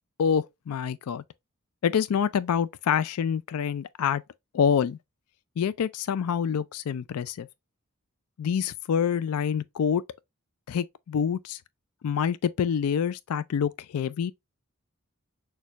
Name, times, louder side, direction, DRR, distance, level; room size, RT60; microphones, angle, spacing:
voice 1, 0.2-1.2 1.8-4.2 4.5-5.0 5.6-7.5 8.4-10.0 10.7-11.6 12.0-14.3, left 7 dB, 90° left, 0.4 m, -26 dB
6.5 x 2.3 x 2.8 m
head